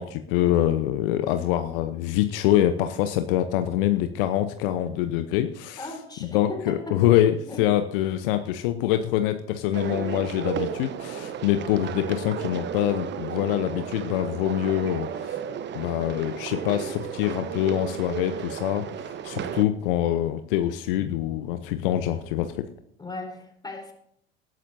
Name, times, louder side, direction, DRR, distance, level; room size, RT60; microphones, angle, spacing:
voice 1, 0.0-5.9 6.2-15.4 15.7-22.7, left 12 dB, 60° left, 9 dB, 0.9 m, -25 dB
voice 2, 5.8-7.0 7.5-7.6 23.0-23.9, left 2 dB, 15° left, 3 dB, 4.0 m, -37 dB
sound 1, 9.7-19.6, right 8 dB, 35° right, 1.0 m, -33 dB
19.0 x 12.0 x 2.7 m, 0.72 s
figure-of-eight pair, 75°, 31 cm